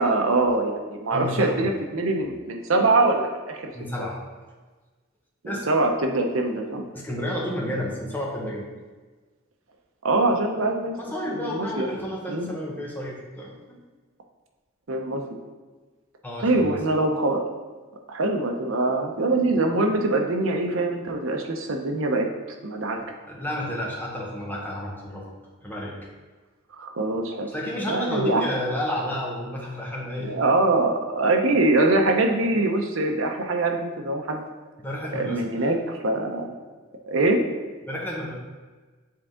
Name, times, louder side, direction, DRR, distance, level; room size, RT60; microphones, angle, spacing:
voice 1, 0.0-3.6 4.0-4.1 5.4-6.8 10.0-10.9 11.3-11.9 12.3-12.5 14.9-15.2 16.4-17.4 18.1-22.3 22.6-23.0 26.8-27.5 27.9-28.4 30.2-34.4 35.1-36.5 37.1-37.4, right 2 dB, 75° right, 3 dB, 0.8 m, -23 dB
voice 2, 1.1-1.6 3.7-4.2 5.4-5.7 6.9-8.6 11.0-13.8 16.2-16.7 23.3-25.2 25.6-25.9 27.5-30.3 34.8-35.7 37.8-38.3, left 1 dB, 10° left, -3 dB, 1.0 m, -31 dB
7.4 x 3.7 x 3.7 m, 1.3 s
head